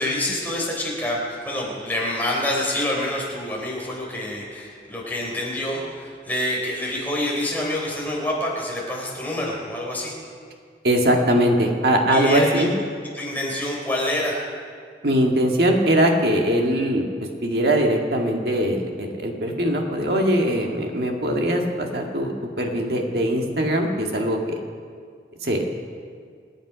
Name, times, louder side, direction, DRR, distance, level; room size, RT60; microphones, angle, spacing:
voice 1, 0.0-10.1 12.1-12.7 13.1-14.4, left 1 dB, 10° left, -3 dB, 3.8 m, -27 dB
voice 2, 10.8-12.7 15.0-17.1 17.4-24.6 25.4-25.7, right 1 dB, 60° right, 1 dB, 1.9 m, -21 dB
26.5 x 9.2 x 5.1 m, 2.1 s
head